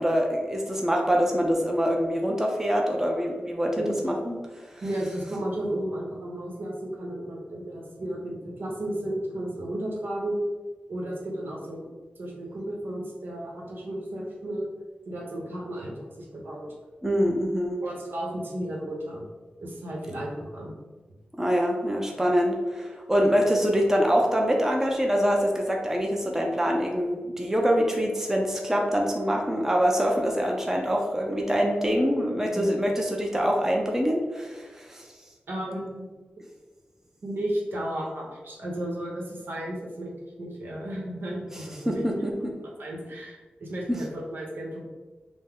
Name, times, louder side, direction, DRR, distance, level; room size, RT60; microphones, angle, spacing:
voice 1, 0.0-4.7 17.0-17.7 21.4-35.0 41.9-42.5 43.9-44.0, equal, 10° right, 0 dB, 0.6 m, -25 dB
voice 2, 3.8-4.1 4.8-10.5 10.9-11.9 12.2-14.7 15.1-16.7 17.2-17.3 17.8-19.2 19.6-20.7 22.1-22.2 32.5-32.7 35.5-36.1 37.2-40.1 40.4-42.0 42.8-44.8, right 1 dB, 80° right, -2 dB, 1.0 m, -33 dB
5.3 x 2.1 x 3.6 m, 1.3 s
wide cardioid pair, 105°, 4 cm